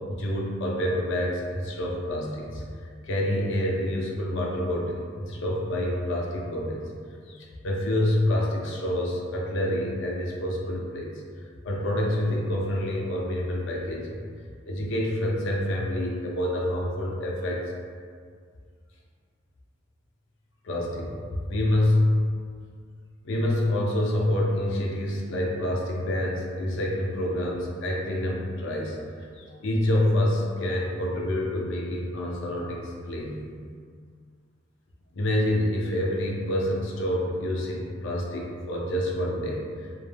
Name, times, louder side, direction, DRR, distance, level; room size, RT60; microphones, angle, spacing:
voice 1, 0.1-2.6 3.0-6.8 7.3-11.2 11.6-14.2 14.7-17.7 20.6-21.2 21.5-22.2 23.2-33.4 35.1-39.9, left 1 dB, 65° left, -2 dB, 0.5 m, -27 dB
2.1 x 2.1 x 3.2 m, 2.1 s
head